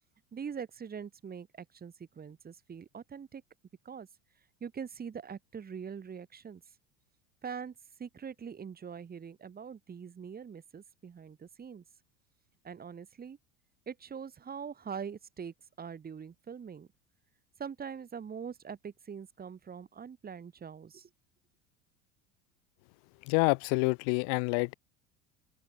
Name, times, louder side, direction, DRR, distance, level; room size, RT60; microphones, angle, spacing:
voice 1, 0.3-3.4 3.8-4.1 4.6-6.6 7.4-11.8 12.6-13.4 13.9-16.9 17.6-21.1, right 7 dB, 25° right, 1.6 m, -43 dB
voice 2, 23.2-24.7, left 40 dB or more, 55° left, 0.6 m, -27 dB
open air
hypercardioid pair, 75°, 40 cm